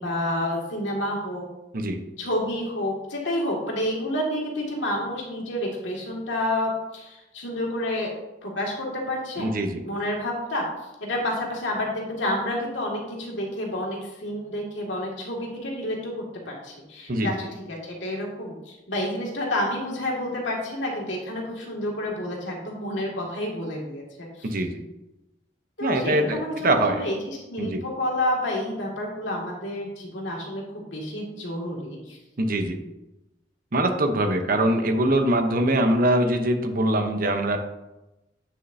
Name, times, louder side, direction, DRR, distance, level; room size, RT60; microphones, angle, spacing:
voice 1, 0.0-1.4 2.2-8.1 8.4-9.5 9.8-10.7 11.0-24.5 25.8-32.2, left 1 dB, 85° left, -2 dB, 2.1 m, -29 dB
voice 2, 9.4-9.7 17.1-17.3 24.4-24.8 25.8-27.0 27.6-27.8 32.4-32.8 33.7-37.6, right 1 dB, 50° right, 6 dB, 0.8 m, -23 dB
8.6 x 6.4 x 2.7 m, 0.98 s
head